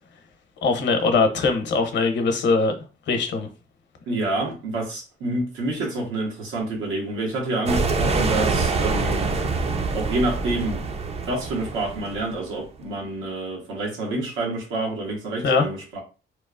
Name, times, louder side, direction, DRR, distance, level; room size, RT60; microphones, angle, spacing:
voice 1, 0.6-2.7 3.1-3.5 15.4-15.7, left 4 dB, 65° left, 0.8 m, -21 dB
voice 2, 4.1-9.4 9.9-10.9 11.3-16.0, right 2 dB, 85° right, 1.1 m, -28 dB
sound 1, 7.7-12.6, right 3 dB, 30° right, 0.4 m, -25 dB
2.9 x 2.0 x 2.4 m
cardioid pair, 90°, 20 cm